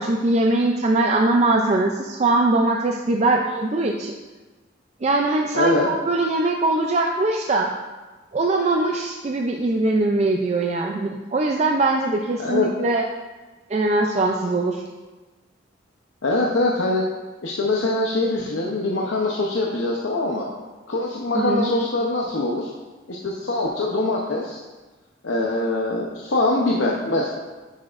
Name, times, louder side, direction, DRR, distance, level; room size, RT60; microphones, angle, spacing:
voice 1, 0.0-4.2 5.0-7.7 8.3-13.1 13.7-14.8 21.3-21.7, right 2 dB, 35° right, 1 dB, 0.4 m, -21 dB
voice 2, 5.5-5.9 12.4-12.7 16.2-17.0 17.4-20.5 20.9-22.7 23.1-24.6 25.2-27.3, left 2 dB, 80° left, -2 dB, 0.7 m, -23 dB
9.3 x 6.1 x 2.5 m, 1.2 s
head